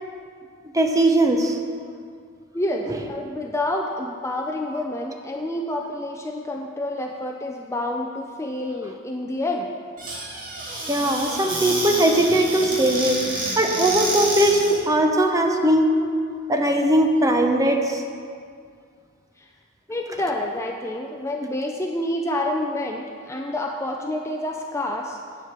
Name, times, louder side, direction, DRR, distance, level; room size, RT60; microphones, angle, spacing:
voice 1, 0.7-1.6 2.9-3.0 10.9-13.2 13.6-16.1 16.5-18.0, right 1 dB, 15° right, 3 dB, 0.8 m, -20 dB
voice 2, 2.5-9.8 11.3-11.4 12.6-12.7 14.1-14.2 15.4-15.7 17.6-17.7 19.4-19.5 19.9-25.2, left 1 dB, 15° left, 2 dB, 0.5 m, -28 dB
Squeak / Cupboard open or close, 10.0-14.8, right 1 dB, 40° right, 2.2 m, -29 dB
8.9 x 7.7 x 6.7 m, 2.2 s
head